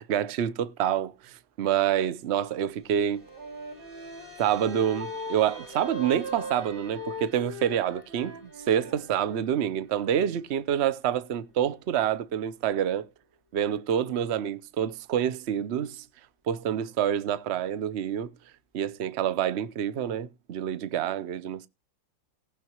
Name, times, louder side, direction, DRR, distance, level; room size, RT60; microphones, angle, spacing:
voice 1, 0.0-3.2 4.4-13.1 13.5-16.0 16.5-18.3 18.7-21.7, right 9 dB, 55° right, 0.7 m, -27 dB
sound 1, 2.1-12.9, left 2 dB, 35° right, 6.8 m, -53 dB
Wind instrument woodwind instrument, 3.0-9.4, left 1 dB, 90° right, 6.1 m, -40 dB
19.0 x 6.8 x 3.0 m
omnidirectional pair, 2.2 m